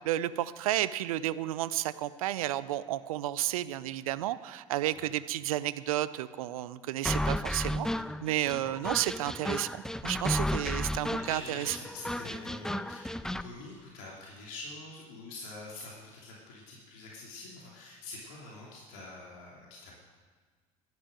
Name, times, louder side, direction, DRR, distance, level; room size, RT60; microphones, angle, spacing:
voice 1, 0.0-7.9 8.2-11.8, right 14 dB, 75° right, 16 dB, 0.6 m, -32 dB
sound 1, 7.0-13.5, left 1 dB, 5° left, 0.5 m, -33 dB
voice 2, 11.2-20.0, left 2 dB, 65° left, -3 dB, 3.0 m, -46 dB
12.0 x 10.5 x 7.6 m, 1.5 s
figure-of-eight pair, 65°, 18 cm